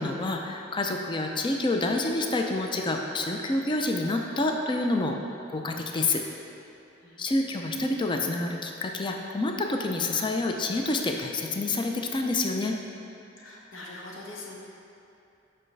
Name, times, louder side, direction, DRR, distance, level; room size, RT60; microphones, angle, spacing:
voice 1, 0.0-5.2 5.5-6.2 7.2-12.8, left 2 dB, 25° left, 2 dB, 0.4 m, -28 dB
voice 2, 7.0-7.4 13.4-14.6, left 2 dB, 70° left, -2 dB, 1.1 m, -43 dB
7.6 x 5.5 x 3.2 m, 2.8 s
head